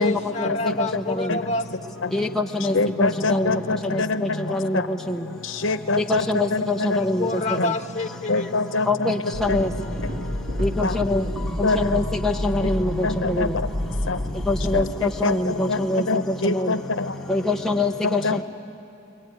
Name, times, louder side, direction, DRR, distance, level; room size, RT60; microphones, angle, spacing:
voice 1, 0.0-1.6 7.2-8.5, left 2 dB, 35° left, 4 dB, 1.5 m, -27 dB
voice 2, 2.1-3.5 3.9-4.0 4.5-4.8 6.0-7.3 8.9-9.7 10.6-11.2 11.6-13.5 14.5-16.0 16.4-16.7 17.3-18.4, left 2 dB, ahead, 1 dB, 0.6 m, -24 dB
voice 3, 2.7-4.2 5.6-6.2 6.5-7.0 7.6-7.7 8.3-9.1 9.5-9.6 10.8-10.9 11.6-11.8 13.0-13.5 14.1-14.2 15.2-15.8 16.1-16.8 18.2-18.4, left 3 dB, 85° left, 11 dB, 0.9 m, -24 dB
sound 1, 9.3-14.8, left 1 dB, 60° right, 2.8 m, -29 dB
23.0 x 23.0 x 9.4 m, 2.9 s
head